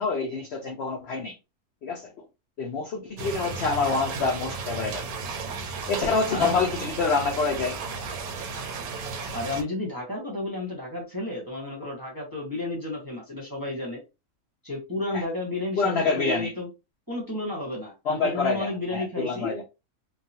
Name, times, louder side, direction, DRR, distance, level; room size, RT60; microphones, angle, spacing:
voice 1, 0.0-1.3 1.8-2.1 2.6-5.1 5.9-7.8 15.1-15.2 15.8-16.5 18.1-19.6, left 4 dB, 65° left, 0.6 m, -26 dB
sound 1, 3.2-9.6, right 4 dB, 75° right, 1.1 m, -34 dB
voice 2, 6.3-6.6 9.3-14.0 14.6-16.7 17.1-19.5, left 2 dB, 15° right, 0.8 m, -32 dB
3.0 x 2.3 x 2.7 m
omnidirectional pair, 1.6 m